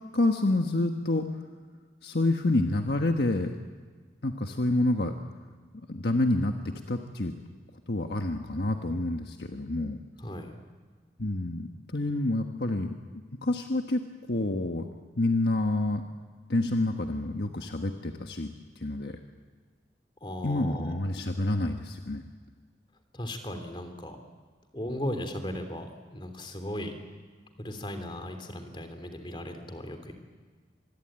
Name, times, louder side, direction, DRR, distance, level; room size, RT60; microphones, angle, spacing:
voice 1, 0.1-1.3 2.0-3.5 4.2-5.1 5.9-7.3 7.9-10.0 11.2-12.9 13.4-14.0 14.3-14.9 15.2-16.0 16.5-19.2 20.4-22.2, left 2 dB, 70° left, 4 dB, 1.4 m, -28 dB
voice 2, 10.2-10.6 20.2-21.0 23.1-24.2 24.7-26.9 27.6-30.1, left 1 dB, 30° left, 6 dB, 3.1 m, -37 dB
26.0 x 21.5 x 9.0 m, 1.5 s
head